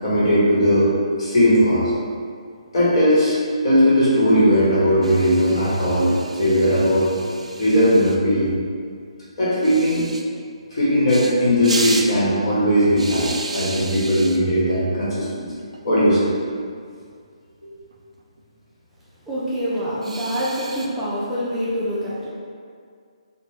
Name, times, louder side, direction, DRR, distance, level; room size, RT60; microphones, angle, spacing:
voice 1, 0.0-1.9 2.7-3.4 3.6-7.1 7.6-8.5 9.4-10.0 10.7-15.5 15.8-16.3 17.6-17.7, equal, 55° left, -8 dB, 1.1 m, -18 dB
sound 1, 5.0-8.2 9.6-10.2 11.1-11.3 11.6-12.1 13.0-14.4 15.6-15.8 16.1-16.2 16.5-16.6 17.9-18.4 20.0-20.9, right 2 dB, 80° right, 0.3 m, -33 dB
voice 2, 19.3-22.3, equal, 10° right, -9 dB, 0.4 m, -26 dB
2.5 x 2.1 x 3.4 m, 2.2 s
figure-of-eight pair, 145°, 3 cm